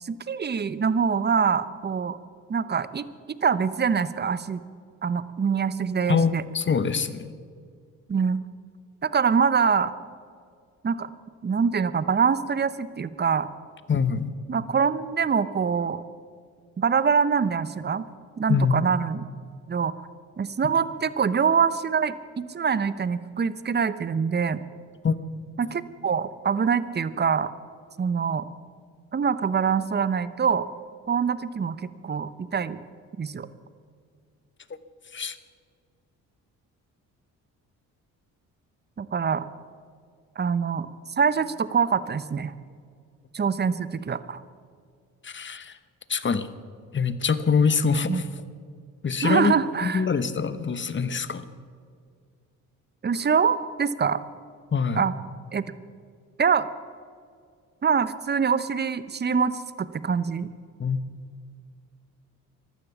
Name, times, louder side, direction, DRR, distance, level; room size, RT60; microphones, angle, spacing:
voice 1, 0.0-2.2 2.5-3.0 3.4-4.6 5.0-6.4 8.1-8.4 9.0-9.9 10.8-11.1 11.4-13.5 14.5-16.0 16.8-18.1 18.4-19.3 19.7-19.9 20.4-24.6 25.6-27.5 28.0-28.5 29.1-30.7 31.1-32.8 33.2-33.5 39.0-39.5 40.4-40.9 41.2-42.5 43.3-44.4 48.1-48.2 49.2-50.1 53.0-54.2 55.0-55.1 55.5-55.6 56.4-56.7 57.8-60.5, right 6 dB, 30° right, 15 dB, 0.8 m, -24 dB
voice 2, 6.1-7.3 13.9-14.3 18.5-18.8 25.0-25.2 35.1-35.4 45.2-45.8 46.1-46.5 46.9-48.3 49.0-49.6 49.8-51.5 54.7-55.1 60.8-61.0, left 5 dB, 35° left, 14 dB, 1.0 m, -24 dB
14.5 x 12.0 x 7.1 m, 2.2 s
cardioid pair, 75°, 34 cm